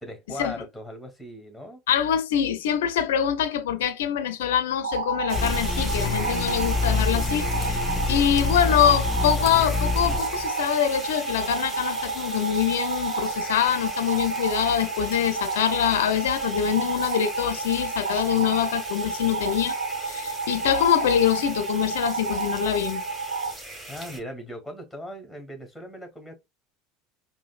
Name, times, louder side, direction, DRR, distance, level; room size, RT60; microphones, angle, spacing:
voice 1, 0.0-1.8 23.9-26.4, equal, ahead, 1.9 m, -39 dB
voice 2, 1.9-19.8 20.1-23.0, left 9 dB, 70° left, 0.5 m, -24 dB
sound 1, 4.8-23.5, right 4 dB, 85° right, 0.6 m, -31 dB
sound 2, 5.3-10.5, left 4 dB, 15° left, 1.4 m, -27 dB
sound 3, 5.3-24.2, right 1 dB, 15° right, 1.9 m, -38 dB
4.8 x 2.2 x 2.4 m
hypercardioid pair, 75°, 0 cm